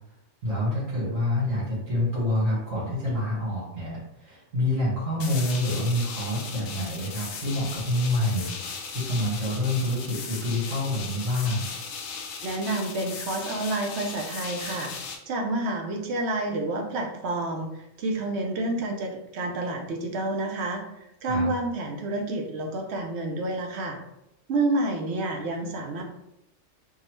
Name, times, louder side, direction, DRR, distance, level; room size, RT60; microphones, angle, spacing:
voice 1, 0.4-11.7 21.2-21.5, left 1 dB, 90° right, -8 dB, 2.0 m, -27 dB
sound 1, 5.2-15.2, left 5 dB, 70° left, 0.8 m, -37 dB
voice 2, 12.4-14.9 15.3-20.8 21.2-24.0 24.5-26.0, right 2 dB, 65° right, 2 dB, 0.7 m, -29 dB
3.6 x 2.0 x 3.1 m, 0.85 s
omnidirectional pair, 1.3 m